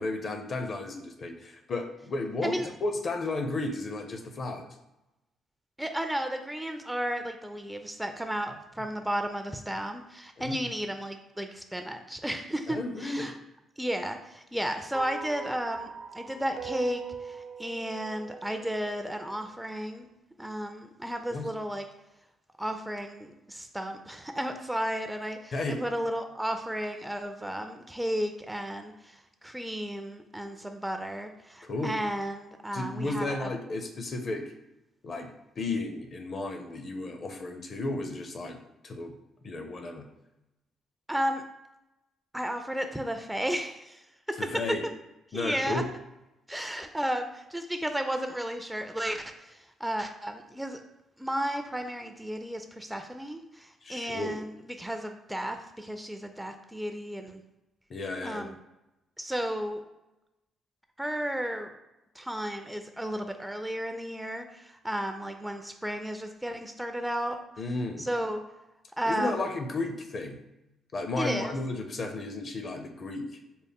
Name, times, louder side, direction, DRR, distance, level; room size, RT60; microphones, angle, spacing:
voice 1, 0.0-4.7 10.4-10.6 12.7-13.3 21.3-21.5 25.5-25.8 31.6-31.9 32.7-34.5 35.0-38.6 38.8-39.1 39.4-40.1 44.4-44.8 45.3-45.8 53.8-54.4 57.9-58.5 67.6-68.1 69.1-70.4 70.9-73.2, left 2 dB, 50° left, 5 dB, 0.6 m, -33 dB
voice 2, 5.8-13.4 13.8-15.9 16.1-20.1 20.4-21.9 22.6-33.5 41.1-41.4 42.3-44.0 45.3-45.8 46.5-50.8 51.2-57.4 58.2-58.6 59.2-59.8 61.0-61.7 62.2-67.4 68.0-68.4 69.0-69.4 71.2-71.5, equal, 5° right, 6 dB, 0.3 m, -33 dB
sound 1, 14.9-19.4, right 5 dB, 60° right, 0.6 m, -42 dB
4.2 x 2.0 x 3.5 m, 0.95 s
cardioid pair, 90°, 0 cm